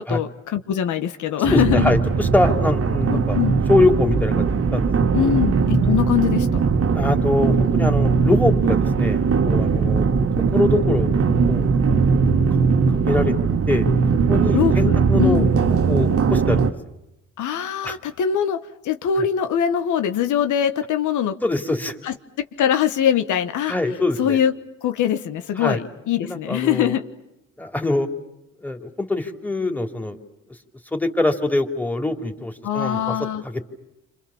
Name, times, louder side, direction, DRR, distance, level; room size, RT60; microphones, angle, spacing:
voice 1, 0.0-1.9 3.1-3.6 5.1-6.6 14.5-15.5 17.4-21.3 22.0-22.1 22.6-23.7 24.2-24.5 24.8-27.0 32.6-33.4, left 9 dB, 75° left, 8 dB, 1.4 m, -22 dB
sound 1, 1.4-16.7, right 5 dB, 50° right, 1.6 m, -19 dB
voice 2, 1.5-3.4 3.7-4.9 5.2-5.4 6.9-10.1 10.5-11.1 11.5-12.0 12.5-12.6 13.1-13.3 13.7-13.9 14.3-16.7 17.8-18.0 19.2-19.3 21.4-22.0 23.7-24.4 25.6-25.8 26.2-27.0 27.6-28.1 28.6-30.2 30.9-33.2 33.4-33.6, left 2 dB, 5° left, 4 dB, 3.1 m, -23 dB
30.0 x 26.5 x 7.2 m, 0.91 s
cardioid pair, 90°, 30 cm